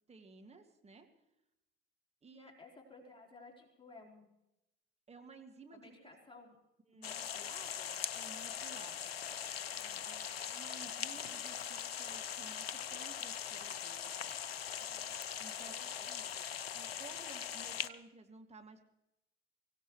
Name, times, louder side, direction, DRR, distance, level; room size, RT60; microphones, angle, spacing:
voice 1, 0.1-1.1 2.2-2.5 5.1-6.0 6.9-7.4 8.1-9.1 10.0-14.3 15.4-16.2 16.7-18.8, right 4 dB, 20° right, 4 dB, 2.2 m, -56 dB
voice 2, 2.3-4.3 5.7-6.6 6.9-8.0 9.8-10.5 10.8-11.0 14.8-15.2 15.5-16.5, left 3 dB, 15° left, 0 dB, 4.3 m, -58 dB
sound 1, 7.0-17.9, left 9 dB, 80° left, 0.7 m, -41 dB
24.0 x 17.0 x 3.3 m, 0.88 s
figure-of-eight pair, 60°, 30 cm